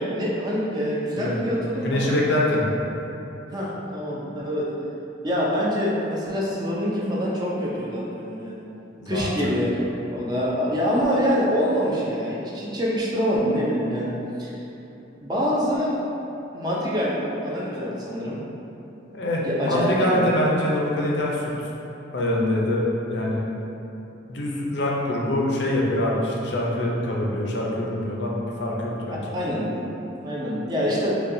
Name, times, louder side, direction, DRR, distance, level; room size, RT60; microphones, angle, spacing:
voice 1, 0.0-2.1 3.5-4.7 5.2-8.7 9.1-9.8 10.1-14.5 15.2-16.0 16.5-17.2 17.4-18.4 19.4-20.2 29.3-29.7 30.2-31.2, equal, 20° right, -6 dB, 0.5 m, -25 dB
voice 2, 1.8-2.6 9.0-9.6 19.1-21.5 22.1-23.4 24.3-29.3, left 1 dB, 65° left, -3 dB, 0.6 m, -24 dB
5.4 x 2.3 x 2.6 m, 2.9 s
head